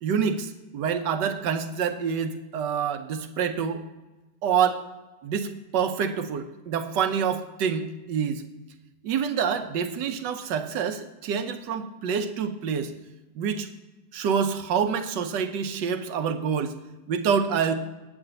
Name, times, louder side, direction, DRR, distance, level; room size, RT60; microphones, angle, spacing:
voice 1, 0.0-3.8 4.4-4.8 5.2-8.4 9.0-12.9 13.3-13.7 14.1-16.8 17.1-17.7, right 7 dB, 80° right, 8 dB, 1.4 m, -27 dB
8.3 x 4.9 x 7.6 m, 1.1 s
omnidirectional pair, 1.9 m